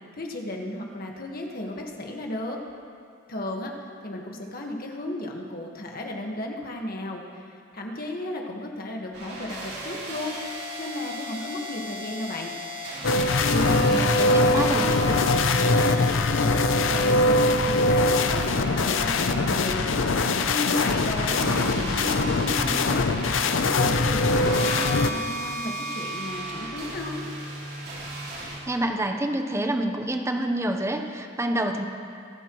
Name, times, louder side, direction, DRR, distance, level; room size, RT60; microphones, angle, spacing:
voice 1, 0.1-2.6 3.3-3.7 4.0-12.5 13.4-14.1 14.5-19.9 20.5-23.1 23.6-27.2, left 1 dB, 50° left, 1 dB, 1.5 m, -34 dB
sound 1, 9.1-28.6, right 1 dB, 55° right, 4.2 m, -36 dB
sound 2, 13.0-25.1, left 2 dB, 75° left, 0.6 m, -22 dB
voice 2, 13.8-14.9 21.4-22.0 28.3-31.8, right 1 dB, 15° right, 4 dB, 0.8 m, -28 dB
sound 3, 22.6-25.2, equal, 15° left, 0.9 m, -38 dB
26.5 x 10.0 x 3.1 m, 2.3 s
head